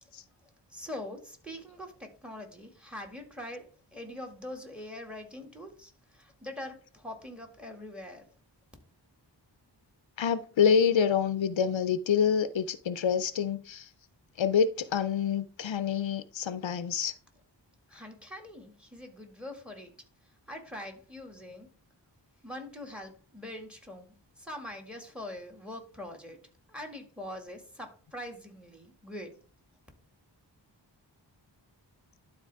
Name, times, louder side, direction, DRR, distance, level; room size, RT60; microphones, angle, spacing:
voice 1, 0.4-8.3 17.9-20.0 20.2-21.7 22.4-29.4, left 1 dB, ahead, 2.1 m, -43 dB
voice 2, 10.2-13.9 14.4-17.1, left 7 dB, 80° left, 0.6 m, -27 dB
12.0 x 4.1 x 3.5 m
wide cardioid pair, 55°, 45 cm